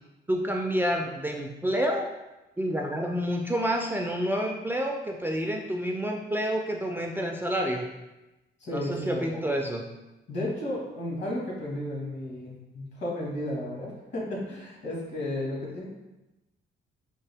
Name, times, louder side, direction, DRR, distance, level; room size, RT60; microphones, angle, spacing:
voice 1, 0.3-2.1 2.6-7.9 8.7-9.8, equal, 10° right, 1 dB, 0.3 m, -28 dB
voice 2, 8.6-9.4 10.3-15.9, left 1 dB, 60° left, -3 dB, 1.5 m, -33 dB
3.6 x 2.6 x 3.3 m, 1.0 s
cardioid pair, 90°, 20 cm